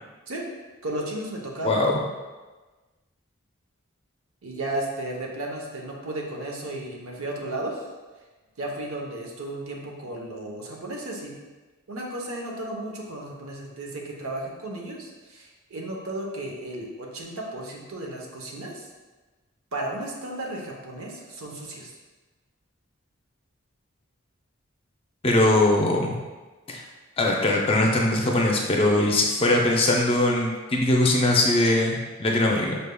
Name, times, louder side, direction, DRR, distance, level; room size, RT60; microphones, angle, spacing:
voice 1, 0.8-1.7 4.4-7.8 8.6-11.3 11.9-18.9 19.7-21.9, right 1 dB, 90° right, 0 dB, 0.8 m, -34 dB
voice 2, 25.2-26.2 26.7-26.8 27.2-32.8, left 1 dB, 25° left, 0 dB, 0.4 m, -21 dB
5.4 x 3.4 x 2.2 m, 1.3 s
head